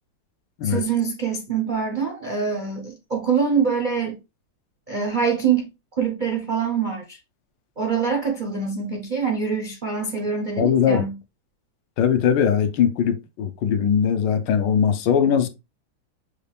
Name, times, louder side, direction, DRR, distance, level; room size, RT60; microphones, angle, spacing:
voice 1, 0.6-4.2 4.9-5.7 6.0-7.2 7.8-11.2, right 6 dB, 75° right, 0.4 m, -24 dB
voice 2, 10.6-11.0 12.0-15.5, left 8 dB, 75° left, 1.2 m, -20 dB
6.6 x 2.3 x 3.3 m
omnidirectional pair, 2.2 m